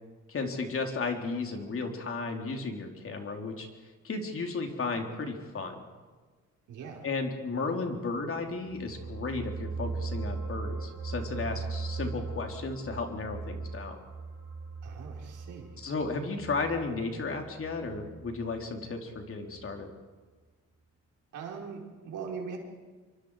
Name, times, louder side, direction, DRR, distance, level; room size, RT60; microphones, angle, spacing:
voice 1, 0.3-3.7 4.0-5.8 7.0-14.0 15.8-19.9, left 3 dB, 45° left, 3 dB, 3.7 m, -34 dB
voice 2, 6.7-7.1 14.8-15.8 21.3-22.6, right 6 dB, 80° right, -1 dB, 4.7 m, -41 dB
sound 1, 8.6-19.2 19.5-19.7, right 4 dB, 55° right, 6.6 m, -39 dB
27.0 x 24.0 x 5.0 m, 1.4 s
cardioid pair, 90°, 30 cm